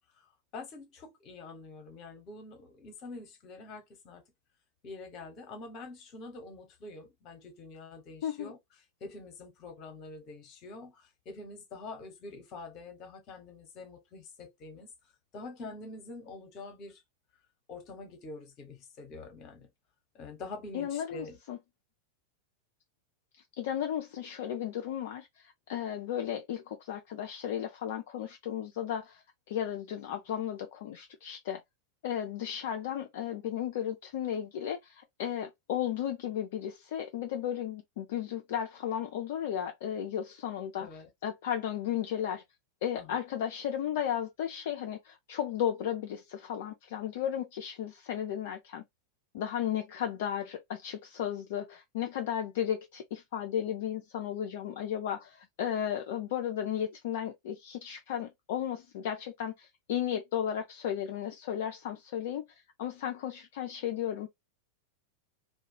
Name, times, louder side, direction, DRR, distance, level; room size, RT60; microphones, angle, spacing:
voice 1, 0.5-4.2 4.8-8.6 9.0-14.9 15.3-17.0 17.7-19.7 20.1-21.4 40.8-41.1 43.0-43.2, left 3 dB, 35° left, 0.9 m, -46 dB
voice 2, 8.2-8.5 20.7-21.6 23.3-29.2 29.5-31.6 32.0-40.9 41.2-42.4 42.8-48.8 49.3-62.4 62.8-64.3, left 10 dB, 55° left, 0.4 m, -34 dB
2.3 x 2.1 x 2.8 m
figure-of-eight pair, 90°, 0 cm